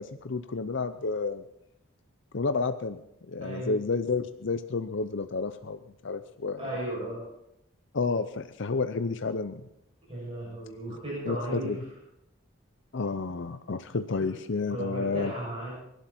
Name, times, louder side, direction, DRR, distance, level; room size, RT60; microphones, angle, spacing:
voice 1, 0.0-1.4 2.3-3.0 3.3-6.7 7.9-9.6 10.9-11.0 11.3-11.8 12.9-15.3, left 4 dB, 60° left, 10 dB, 0.6 m, -30 dB
voice 2, 6.6-7.2 10.1-11.8 14.7-15.7, right 1 dB, 25° right, -6 dB, 7.1 m, -35 dB
23.5 x 11.5 x 4.4 m, 0.81 s
head